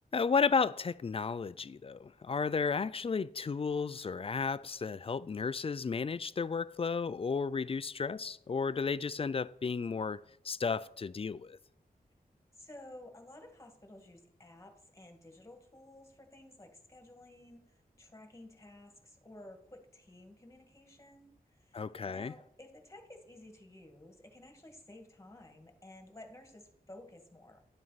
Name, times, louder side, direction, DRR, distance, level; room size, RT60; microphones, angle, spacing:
voice 1, 0.1-11.6 21.7-22.3, left 5 dB, 40° left, 0.3 m, -33 dB
voice 2, 12.5-27.6, left 1 dB, 20° left, 1.8 m, -54 dB
10.5 x 7.5 x 4.1 m
wide cardioid pair, 100°, 16 cm